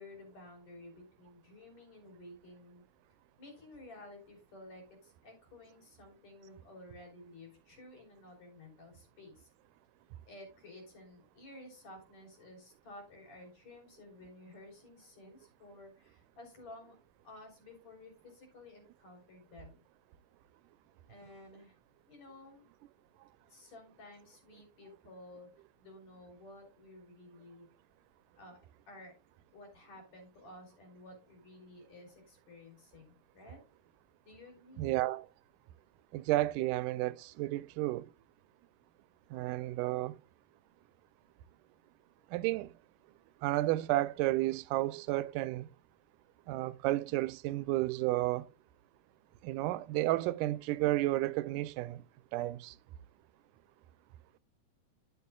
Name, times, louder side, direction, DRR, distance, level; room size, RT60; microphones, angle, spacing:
voice 1, 0.0-2.8 3.4-9.5 10.3-17.0 17.2-19.8 21.1-21.8 22.1-22.7 23.5-25.5 25.8-27.7 28.3-28.6 28.9-29.1 29.5-33.6 34.2-34.9, left 2 dB, 60° left, 4.7 m, -53 dB
voice 2, 34.8-35.3 36.1-38.1 39.3-40.2 42.3-42.7 43.4-45.7 46.5-48.5 49.4-52.0 52.3-52.8, right 17 dB, 90° right, 2.1 m, -32 dB
11.0 x 8.6 x 2.3 m
omnidirectional pair, 3.6 m